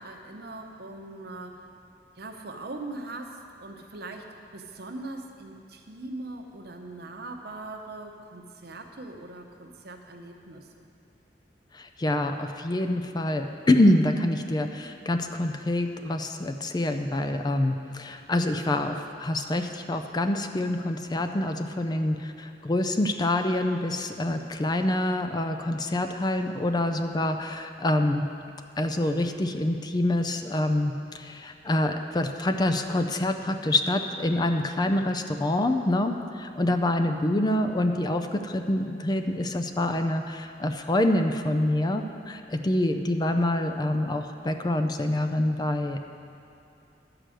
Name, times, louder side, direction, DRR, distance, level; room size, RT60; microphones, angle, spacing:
voice 1, 0.0-1.6 2.2-10.7, right 2 dB, 65° right, 4 dB, 0.9 m, -41 dB
voice 2, 11.7-28.2 28.8-46.0, left 1 dB, 25° left, 6 dB, 0.4 m, -26 dB
11.5 x 4.9 x 7.6 m, 2.7 s
head